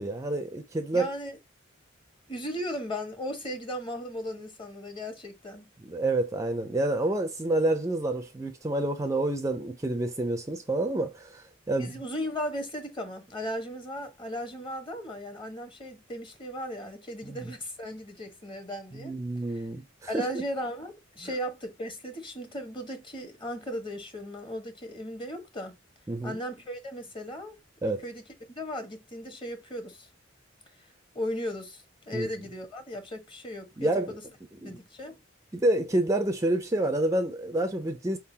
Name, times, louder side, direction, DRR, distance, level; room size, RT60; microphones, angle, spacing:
voice 1, 0.0-1.1 5.8-11.9 17.2-17.5 18.9-20.3 26.1-26.4 27.8-28.0 32.1-32.3 33.8-34.2 34.6-34.7 35.5-38.2, right 1 dB, 15° right, 0.5 m, -28 dB
voice 2, 0.9-1.4 2.3-5.7 11.8-19.1 19.5-19.6 20.1-25.7 26.2-27.6 27.8-28.2 28.6-30.1 31.1-34.2 34.6-35.2, equal, 25° left, 1.2 m, -36 dB
4.6 x 3.8 x 2.7 m
head